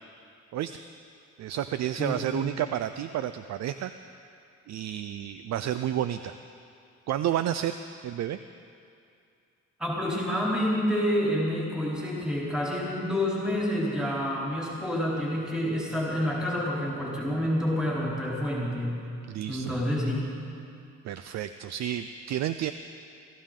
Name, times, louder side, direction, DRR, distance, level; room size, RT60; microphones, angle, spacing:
voice 1, 1.4-3.9 4.7-6.3 7.1-7.8 8.0-8.4 19.3-19.8 21.0-22.7, right 11 dB, 65° right, 11 dB, 0.5 m, -30 dB
voice 2, 2.0-2.4 9.8-19.0 19.5-20.3, equal, 5° right, -6 dB, 3.8 m, -28 dB
22.5 x 13.5 x 3.8 m, 2.5 s
cardioid pair, 90°, 30 cm